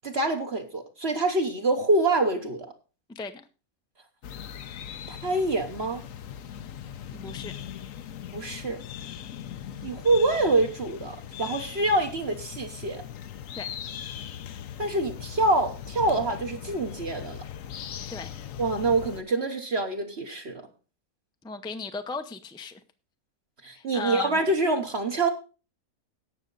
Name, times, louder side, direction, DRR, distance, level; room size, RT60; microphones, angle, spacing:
voice 1, 0.0-2.7 5.1-6.0 8.3-8.8 9.8-13.0 14.8-17.4 18.6-20.6 23.6-25.3, right 2 dB, 50° right, 3 dB, 1.3 m, -26 dB
voice 2, 3.1-3.4 7.1-7.5 13.5-13.7 18.1-18.3 21.4-22.8 23.7-24.4, left 3 dB, 5° left, 7 dB, 0.5 m, -36 dB
sound 1, 4.2-19.2, left 9 dB, 70° left, 1.1 m, -40 dB
17.5 x 6.4 x 3.9 m, 0.34 s
omnidirectional pair, 1.5 m